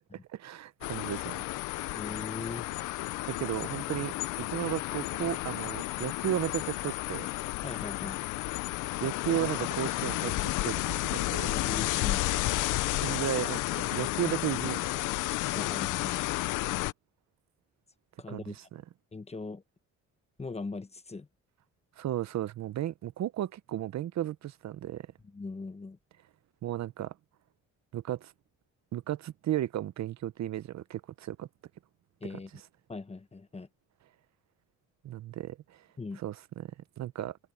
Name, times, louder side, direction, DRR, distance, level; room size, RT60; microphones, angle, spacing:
voice 1, 0.3-1.4 3.3-7.3 9.0-10.3 10.6-11.5 12.9-14.8 18.3-18.8 22.0-25.1 26.6-27.1 27.9-28.3 28.9-31.5 35.0-35.8 36.2-36.7 37.0-37.4, right 12 dB, 65° right, 0.8 m, -34 dB
sound 1, 0.8-16.9, left 18 dB, 90° left, 0.6 m, -32 dB
voice 2, 1.9-2.7 7.6-8.2 11.5-12.3 15.5-16.2 18.2-18.6 19.1-19.6 20.4-21.3 25.2-26.0 32.2-32.5 32.9-33.7 36.0-36.2, left 3 dB, 20° left, 1.2 m, -40 dB
open air
cardioid pair, 90°, 30 cm